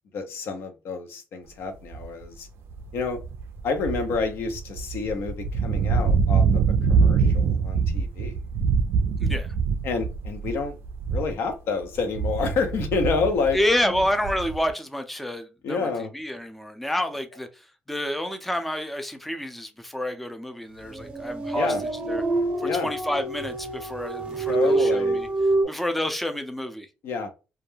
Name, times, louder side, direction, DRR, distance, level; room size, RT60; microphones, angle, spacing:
voice 1, 0.1-2.5 2.9-3.2 3.6-6.6 6.9-8.4 9.8-10.8 11.1-13.6 15.6-16.1 21.5-21.8 22.6-22.9 24.5-25.2 27.0-27.3, left 4 dB, 70° left, 0.6 m, -28 dB
sound 1, 1.9-2.2 2.7-11.5 11.8-14.7, right 5 dB, 75° right, 0.3 m, -24 dB
voice 2, 9.2-9.5 13.5-21.8 22.1-22.2 22.6-25.3 25.7-26.9, left 1 dB, 5° left, 0.4 m, -29 dB
sound 2, 20.9-25.7, right 2 dB, 25° right, 0.7 m, -26 dB
2.3 x 2.1 x 3.1 m
cardioid pair, 100°, 4 cm